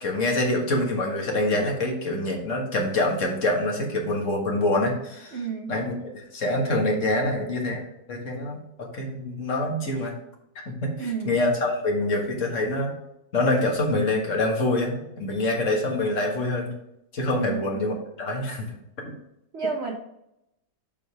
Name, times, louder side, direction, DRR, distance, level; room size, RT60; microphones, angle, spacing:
voice 1, 0.0-7.8 8.1-10.1 10.6-12.9 13.3-16.7 17.1-18.7 19.0-19.1, left 2 dB, 40° left, 1 dB, 1.7 m, -26 dB
voice 2, 5.3-5.7 11.0-11.3 17.3-17.8 19.5-19.9, right 5 dB, 80° right, 0 dB, 0.5 m, -30 dB
7.5 x 4.0 x 4.9 m, 0.83 s
omnidirectional pair, 2.2 m